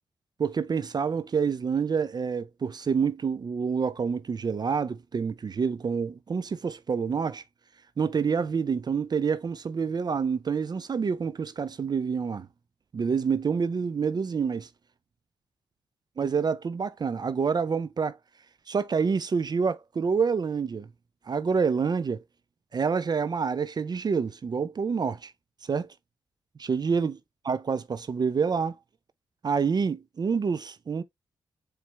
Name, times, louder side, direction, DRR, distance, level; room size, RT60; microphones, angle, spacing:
voice 1, 0.4-7.4 8.0-12.5 12.9-14.7 16.2-18.2 18.7-20.9 21.3-22.2 22.7-25.3 25.6-25.9 26.6-27.2 27.4-28.8 29.4-31.0, right 5 dB, 40° right, 0.4 m, -27 dB
4.4 x 3.2 x 3.3 m
hypercardioid pair, 40°, 10 cm